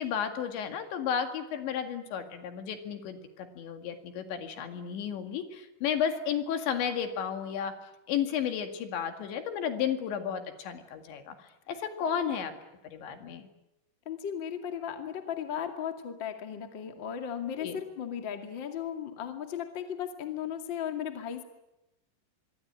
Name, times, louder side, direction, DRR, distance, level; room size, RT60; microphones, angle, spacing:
voice 1, 0.0-7.7 8.1-11.4 11.7-12.5 12.8-13.5 17.6-17.8, left 8 dB, 75° left, 6 dB, 4.3 m, -33 dB
voice 2, 14.1-21.4, left 9 dB, 35° left, 5 dB, 1.9 m, -36 dB
25.0 x 23.0 x 8.9 m, 0.92 s
omnidirectional pair, 5.4 m